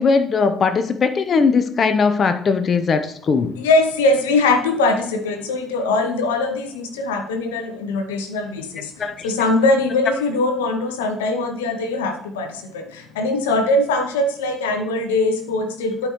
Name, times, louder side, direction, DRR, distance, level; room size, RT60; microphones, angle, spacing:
voice 1, 0.0-3.6 9.0-9.3, left 5 dB, 50° left, 10 dB, 0.7 m, -19 dB
voice 2, 3.6-16.1, left 2 dB, 85° left, 7 dB, 0.8 m, -21 dB
11.5 x 5.1 x 3.0 m, 0.67 s
hypercardioid pair, 55°, 0 cm